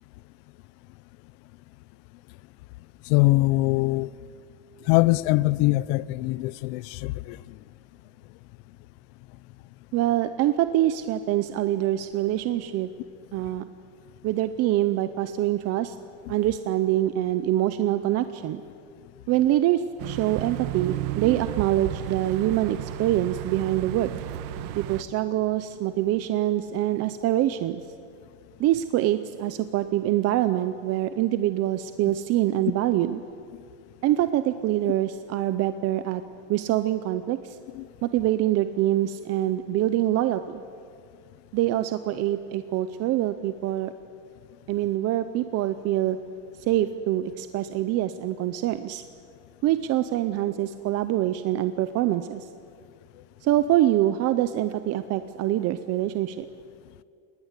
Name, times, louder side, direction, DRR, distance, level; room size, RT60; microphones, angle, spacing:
voice 1, 3.0-4.1 4.8-7.6 16.3-16.4 37.7-37.9, left 20 dB, 55° left, 0.7 m, -23 dB
voice 2, 9.9-12.9 13.3-13.6 14.2-16.0 16.3-18.6 19.3-24.1 24.8-27.8 28.6-33.2 34.0-36.2 36.5-37.6 38.0-40.6 41.5-43.9 44.7-46.2 46.6-49.0 49.6-52.5 53.4-56.5, right 13 dB, 35° right, 0.6 m, -25 dB
sound 1, 20.0-25.0, right 13 dB, 70° right, 1.3 m, -33 dB
28.5 x 20.0 x 8.2 m
cardioid pair, 165°, 47 cm